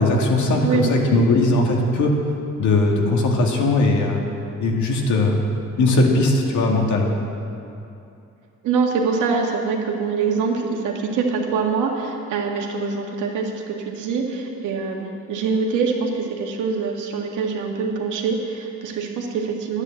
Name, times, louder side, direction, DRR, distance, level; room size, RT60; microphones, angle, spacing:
voice 1, 0.0-2.1 2.6-4.3 4.6-5.4 5.8-7.1, left 2 dB, 75° left, 1 dB, 2.1 m, -19 dB
voice 2, 8.6-19.8, right 5 dB, 85° right, 1 dB, 1.9 m, -24 dB
11.5 x 9.6 x 7.8 m, 2.7 s
cardioid pair, 90°, 30 cm